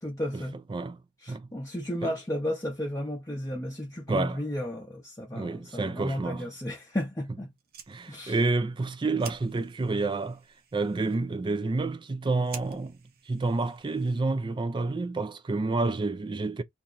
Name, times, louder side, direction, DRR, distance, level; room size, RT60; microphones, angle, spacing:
voice 1, 0.0-0.6 1.2-7.5 8.1-8.4, left 1 dB, 15° left, 0.7 m, -33 dB
voice 2, 0.7-1.0 1.3-1.5 2.0-2.1 4.1-4.4 5.3-6.5 7.9-10.4 10.7-13.0 13.3-16.6, right 3 dB, 25° right, 0.3 m, -29 dB
Fire, 7.5-14.4, right 7 dB, 50° right, 0.7 m, -50 dB
2.9 x 2.6 x 3.8 m
head